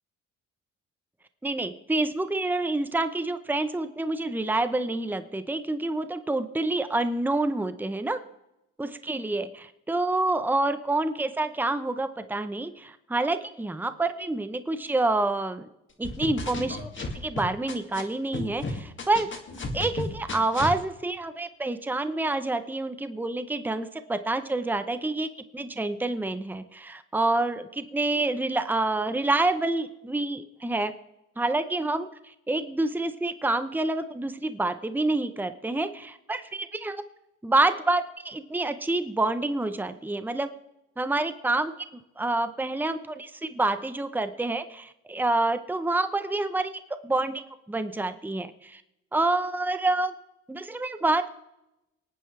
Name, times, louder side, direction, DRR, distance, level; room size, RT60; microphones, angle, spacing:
voice 1, 1.4-8.2 8.8-15.7 16.0-19.3 19.7-30.9 31.4-37.0 37.4-40.5 41.0-48.8 49.1-50.1 50.5-51.3, right 2 dB, 5° right, 10 dB, 0.8 m, -28 dB
sound 1, 16.0-18.0 18.3-20.8, left 2 dB, 40° left, 2.4 m, -33 dB
24.0 x 9.3 x 3.3 m, 0.89 s
cardioid pair, 90°, 30 cm